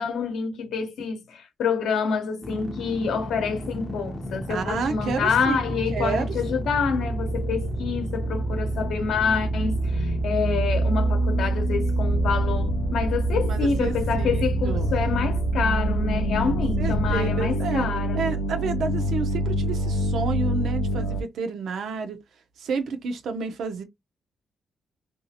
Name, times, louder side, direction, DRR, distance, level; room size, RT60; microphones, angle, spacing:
voice 1, 0.0-18.2, left 5 dB, 70° left, 0.8 m, -27 dB
sound 1, 2.4-17.2, right 2 dB, 10° left, 0.5 m, -27 dB
voice 2, 4.5-5.6 5.9-6.3 13.5-15.0 16.8-17.9 18.1-22.2 22.6-23.8, right 5 dB, 65° right, 0.6 m, -30 dB
sound 2, 4.8-21.2, left 1 dB, 85° left, 0.3 m, -29 dB
2.6 x 2.4 x 2.7 m
cardioid pair, 155°, 0 cm